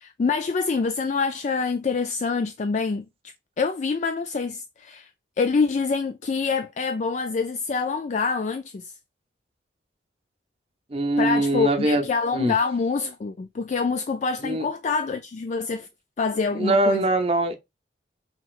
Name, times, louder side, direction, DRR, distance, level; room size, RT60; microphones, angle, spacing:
voice 1, 0.0-3.0 3.6-5.1 5.4-8.9 11.2-15.9 16.2-17.0, left 4 dB, 40° left, 0.3 m, -26 dB
voice 2, 10.9-12.1 12.3-12.6 14.4-14.7 16.5-17.6, right 2 dB, 30° right, 0.6 m, -22 dB
5.8 x 2.9 x 2.4 m
head